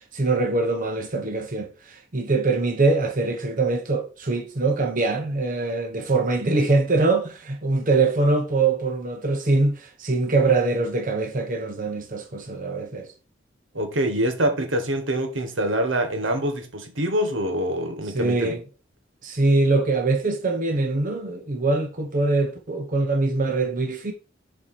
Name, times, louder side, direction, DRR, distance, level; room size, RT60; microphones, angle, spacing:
voice 1, 0.1-13.1 18.1-18.6 19.2-24.1, right 3 dB, 45° right, 1.1 m, -23 dB
voice 2, 13.7-18.6, right 1 dB, 75° right, 1.4 m, -25 dB
7.2 x 4.8 x 4.4 m
head